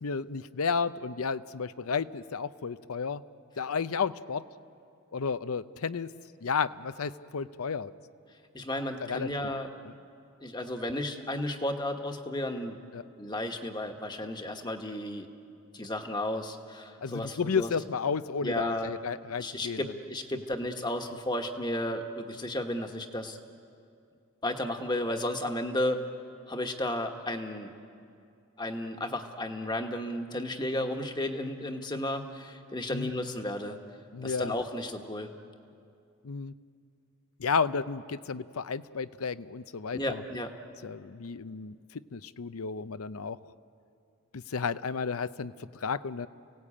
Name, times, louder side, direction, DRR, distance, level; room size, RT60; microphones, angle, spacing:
voice 1, 0.0-3.2 3.6-4.4 5.1-6.1 6.4-7.9 9.0-9.3 12.9-13.0 17.0-19.9 32.9-33.2 34.1-34.5 36.2-36.5 37.4-40.2 40.8-41.8 42.1-43.4 44.3-46.3, left 5 dB, 85° left, 14 dB, 0.6 m, -32 dB
voice 2, 8.5-9.7 10.4-12.8 13.2-15.3 15.7-17.7 18.4-18.9 19.4-23.4 24.4-26.1 26.5-27.7 28.6-33.8 34.2-35.3 39.9-40.5, left 1 dB, 20° left, 5 dB, 1.3 m, -33 dB
29.0 x 18.0 x 8.6 m, 2.5 s
head